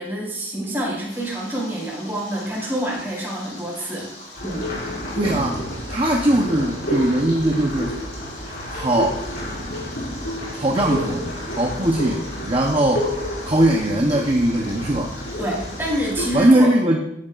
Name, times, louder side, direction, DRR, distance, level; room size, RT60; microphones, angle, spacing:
voice 1, 0.0-4.1 4.4-4.7 15.4-16.7, right 1 dB, 10° right, -5 dB, 4.0 m, -27 dB
Stream, 1.1-16.1, left 2 dB, 40° left, 4.1 m, -42 dB
sound 1, 4.3-16.5, equal, 65° left, 4.5 m, -30 dB
voice 2, 5.1-5.6 5.9-8.0 8.7-9.2 10.5-11.2 11.5-13.1 13.4-15.1 16.3-17.0, right 1 dB, 30° right, 0 dB, 0.8 m, -20 dB
13.0 x 11.0 x 2.5 m, 0.83 s
head